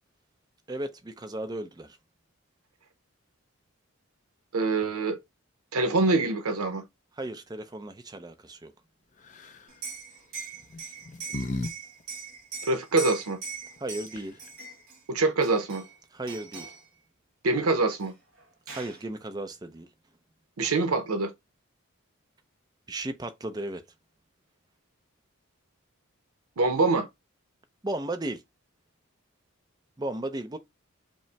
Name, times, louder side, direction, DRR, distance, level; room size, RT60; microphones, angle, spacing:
voice 1, 0.7-2.0 7.2-8.7 13.8-14.4 16.1-16.7 18.7-19.9 22.9-23.8 27.8-28.4 30.0-30.6, right 1 dB, 20° right, 0.5 m, -35 dB
voice 2, 4.5-5.2 5.7-6.8 12.6-13.4 15.1-15.8 17.4-18.1 20.6-21.3 26.6-27.1, right 3 dB, 90° right, 0.7 m, -25 dB
sound 1, 9.2-9.7 10.6-11.7 12.0-12.1 13.8-13.9 14.1-14.5, left 2 dB, 35° left, 0.4 m, -35 dB
Liquid, 9.7-15.0 15.4-16.0 16.3-16.8 18.0-18.1 18.4-19.0, right 4 dB, 70° right, 1.9 m, -40 dB
5.2 x 2.0 x 3.3 m
head